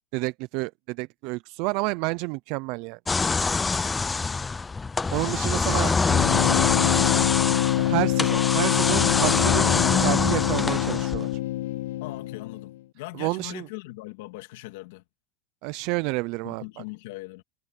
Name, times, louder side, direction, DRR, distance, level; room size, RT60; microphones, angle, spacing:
voice 1, 0.1-3.0 5.1-6.0 7.8-11.3 13.1-13.7 15.6-16.8, right 25 dB, 50° right, 0.4 m, -29 dB
sound 1, 3.1-11.4, left 4 dB, 10° left, 0.5 m, -25 dB
voice 2, 5.2-7.2 12.0-15.0 16.4-17.4, left 20 dB, 70° left, 1.8 m, -40 dB
sound 2, 6.1-12.7, left 15 dB, 90° left, 0.5 m, -25 dB
supercardioid pair, 155°, 0 cm